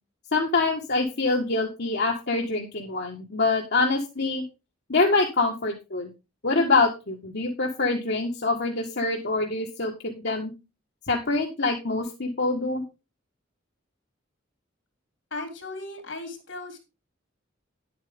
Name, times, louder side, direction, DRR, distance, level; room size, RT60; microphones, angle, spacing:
voice 1, 0.3-4.4 4.9-6.1 6.4-10.5 11.1-12.8, left 3 dB, 60° left, 0 dB, 1.7 m, -25 dB
voice 2, 15.3-16.8, left 2 dB, 80° left, 6 dB, 3.7 m, -36 dB
10.5 x 8.7 x 3.7 m, 0.27 s
head